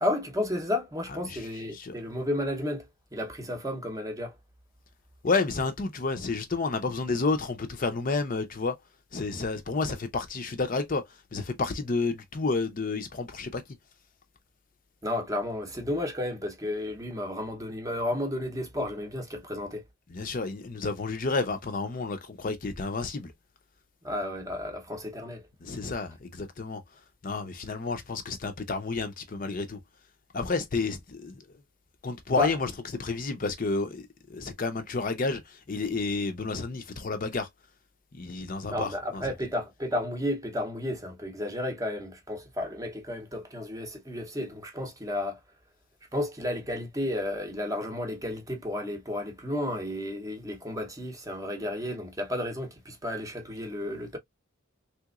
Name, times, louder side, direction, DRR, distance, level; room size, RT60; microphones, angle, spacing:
voice 1, 0.0-2.8 3.1-4.3 15.0-19.8 24.0-25.4 32.4-32.5 38.7-45.4 46.1-54.2, left 1 dB, 15° right, 0.7 m, -32 dB
voice 2, 5.2-8.8 9.1-13.6 20.1-23.3 25.6-26.8 27.2-29.8 30.3-31.4 32.0-37.5 38.1-39.2, left 3 dB, 40° left, 0.5 m, -30 dB
3.4 x 2.9 x 2.3 m
head